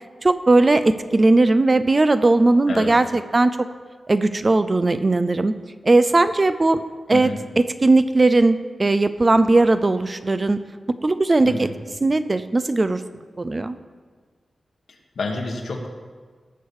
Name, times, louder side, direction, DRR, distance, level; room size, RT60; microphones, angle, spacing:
voice 1, 0.2-3.7 4.1-5.5 5.8-6.8 7.1-10.6 11.0-11.7 12.0-13.0 13.4-13.8, right 2 dB, 30° right, 12 dB, 0.5 m, -18 dB
voice 2, 14.9-15.9, left 3 dB, 75° left, 1 dB, 1.6 m, -29 dB
17.5 x 6.8 x 4.8 m, 1.5 s
wide cardioid pair, 145°, 0 cm